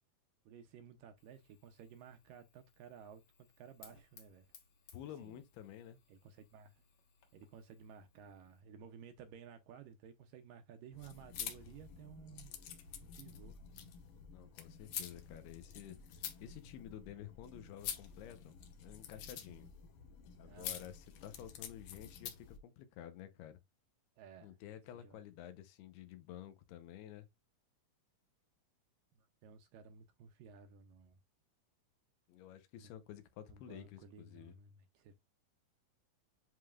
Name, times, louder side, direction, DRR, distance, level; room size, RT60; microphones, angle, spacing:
voice 1, 0.5-4.5 5.2-5.4 6.1-6.7 7.3-12.5 13.0-13.6 20.4-21.0 24.2-24.6 24.9-25.2 29.2-31.2 32.8-32.9 33.5-35.1, right 7 dB, 80° right, 2.1 m, -55 dB
Fire, 1.2-8.6, left 5 dB, 50° left, 2.0 m, -66 dB
voice 2, 4.9-6.0 14.3-16.0 16.4-18.6 18.8-19.7 20.4-23.6 24.4-27.3 32.3-34.5, left 11 dB, 90° left, 3.0 m, -51 dB
sound 1, 10.9-22.6, left 9 dB, 70° left, 2.3 m, -48 dB
10.5 x 3.9 x 2.4 m
omnidirectional pair, 4.5 m